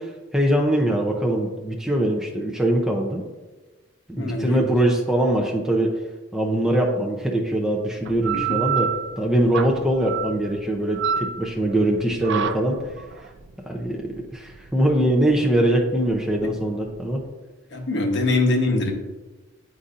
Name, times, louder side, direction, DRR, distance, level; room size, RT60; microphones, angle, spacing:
voice 1, 0.0-3.2 4.1-6.0 6.3-8.9 9.2-12.8 13.7-14.0 14.3-17.2, right 1 dB, 5° right, -1 dB, 0.5 m, -22 dB
voice 2, 4.2-4.6 8.3-8.6 17.7-18.9, left 2 dB, 55° left, 0 dB, 1.0 m, -23 dB
sound 1, 8.1-17.2, right 8 dB, 55° right, 0.3 m, -30 dB
9.6 x 4.0 x 2.5 m, 1.2 s
head